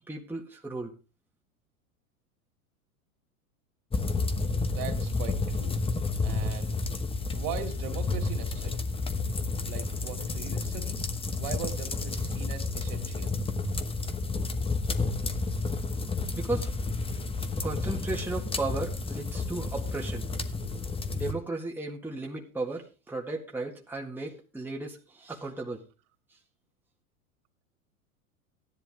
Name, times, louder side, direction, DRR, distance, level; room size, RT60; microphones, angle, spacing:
voice 1, 0.1-0.9 16.3-16.7 17.6-20.3 21.1-25.8, right 3 dB, 5° right, 0 dB, 1.8 m, -35 dB
sound 1, 3.9-21.3, left 3 dB, 15° left, 1.1 m, -31 dB
voice 2, 4.6-5.8 6.2-6.8 7.3-8.8 9.6-11.0 11.4-13.4, right 7 dB, 55° right, 6 dB, 2.8 m, -39 dB
15.0 x 10.5 x 3.6 m, 0.31 s
hypercardioid pair, 90°, 43 cm